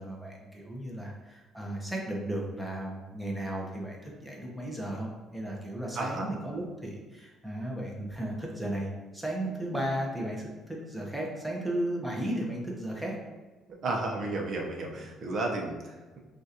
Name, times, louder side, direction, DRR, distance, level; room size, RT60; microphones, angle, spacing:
voice 1, 0.0-13.1, right 1 dB, 5° right, -2 dB, 1.0 m, -35 dB
voice 2, 5.9-6.3 13.8-16.2, right 2 dB, 50° right, 0 dB, 0.9 m, -33 dB
6.1 x 2.6 x 2.9 m, 1.3 s
cardioid pair, 120°, 0 cm